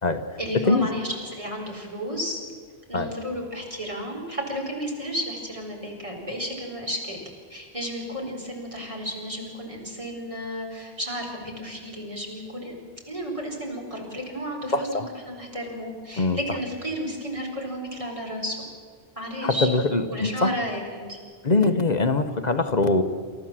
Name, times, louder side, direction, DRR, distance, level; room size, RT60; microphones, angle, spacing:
voice 1, 0.4-2.4 2.9-12.7 13.1-18.6 19.1-19.7 20.1-21.2, equal, 30° right, -1 dB, 4.6 m, -32 dB
voice 2, 14.7-15.1 16.2-16.4 19.4-20.5 21.4-23.0, left 3 dB, 45° left, 8 dB, 1.0 m, -22 dB
28.5 x 14.0 x 7.4 m, 2.1 s
omnidirectional pair, 1.1 m